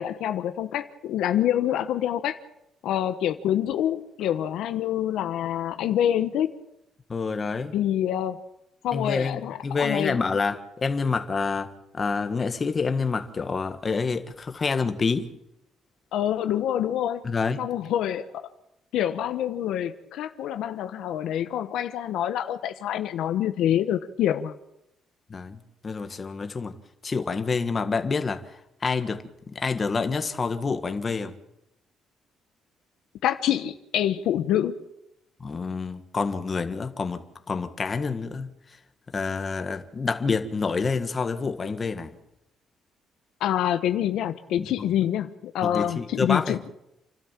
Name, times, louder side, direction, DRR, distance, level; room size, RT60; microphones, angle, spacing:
voice 1, 0.0-2.4 2.8-6.5 7.7-8.4 8.8-10.2 16.1-17.2 17.6-18.2 18.9-24.5 33.2-34.8 43.4-46.7, left 11 dB, 80° left, 1.1 m, -26 dB
voice 2, 7.1-7.7 8.9-15.3 17.2-17.6 25.3-25.6 25.8-26.7 27.0-31.3 35.4-38.5 39.1-42.1 44.6-44.9 45.6-46.6, left 4 dB, 30° left, 1.6 m, -28 dB
29.0 x 12.5 x 7.4 m
cardioid pair, 130°, 0 cm